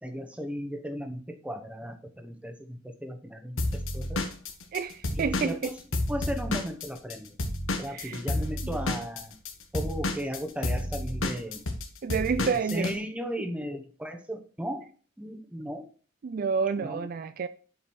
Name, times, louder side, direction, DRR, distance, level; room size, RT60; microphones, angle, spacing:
voice 1, 0.0-4.2 5.1-5.7 6.1-7.4 7.8-9.3 9.7-11.7 12.4-14.9 15.2-15.9 16.8-17.1, equal, 5° right, 0.9 m, -36 dB
Drum kit / Drum, 3.6-7.1 7.4-12.9, left 2 dB, 85° left, 1.3 m, -30 dB
voice 2, 4.7-5.6 7.9-8.2 8.6-8.8 12.0-12.9 13.4-13.5 16.2-17.5, right 5 dB, 45° right, 0.3 m, -29 dB
7.4 x 5.2 x 4.3 m
head